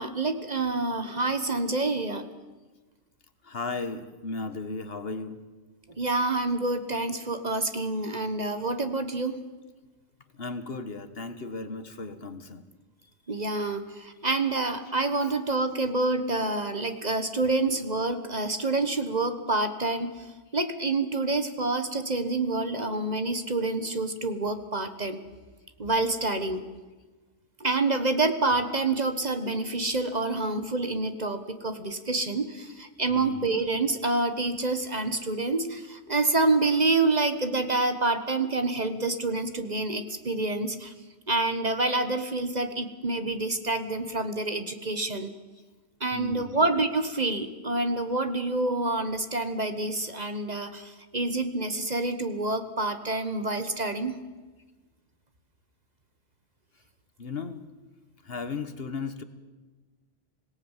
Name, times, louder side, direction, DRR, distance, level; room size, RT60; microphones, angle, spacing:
voice 1, 0.0-2.2 6.0-9.4 13.3-20.1 20.5-25.2 25.8-26.6 27.6-40.9 41.3-45.3 46.0-54.2, right 2 dB, 35° right, 9 dB, 1.4 m, -27 dB
voice 2, 3.4-5.4 10.3-12.7 13.5-13.7 33.1-33.4 46.1-46.6 57.2-57.6 58.2-59.2, left 3 dB, 55° left, 10 dB, 1.5 m, -35 dB
26.5 x 18.0 x 7.4 m, 1.3 s
omnidirectional pair, 1.3 m